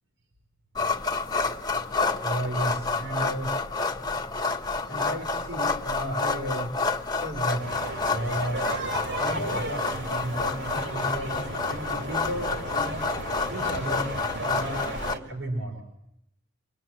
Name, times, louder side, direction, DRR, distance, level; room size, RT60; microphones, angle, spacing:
sound 1, 0.7-15.1, left 4 dB, 20° left, 1.2 m, -29 dB
voice 1, 2.2-3.5 4.9-6.7 7.2-7.7 8.1-8.7 9.2-13.0 13.5-14.8 15.2-15.8, right 1 dB, 80° right, 1 dB, 4.2 m, -33 dB
sound 2, 7.6-15.2, right 2 dB, 65° right, 3.3 m, -35 dB
25.5 x 22.5 x 7.6 m, 0.81 s
head